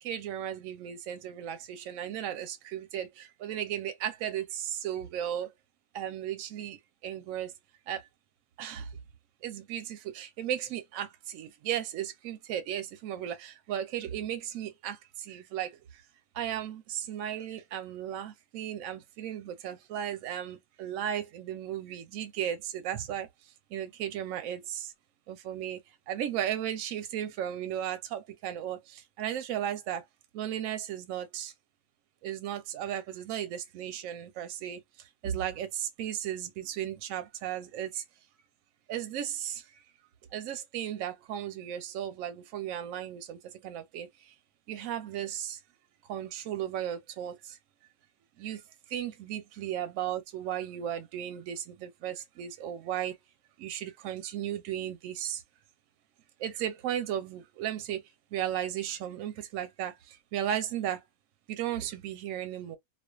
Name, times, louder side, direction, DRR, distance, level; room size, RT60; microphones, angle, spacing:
voice 1, 0.0-5.5 5.9-7.5 7.9-8.0 8.6-8.9 9.4-15.8 16.3-23.3 23.7-24.9 25.3-25.8 26.1-30.0 30.3-31.5 32.2-34.8 35.2-38.0 38.9-39.6 40.3-44.3 44.7-45.6 46.0-47.6 48.4-48.6 48.9-53.2 53.6-55.4 56.4-58.0 58.3-61.0 61.5-62.8, right 10 dB, 65° right, 0.9 m, -35 dB
2.5 x 2.3 x 2.3 m
omnidirectional pair, 1.7 m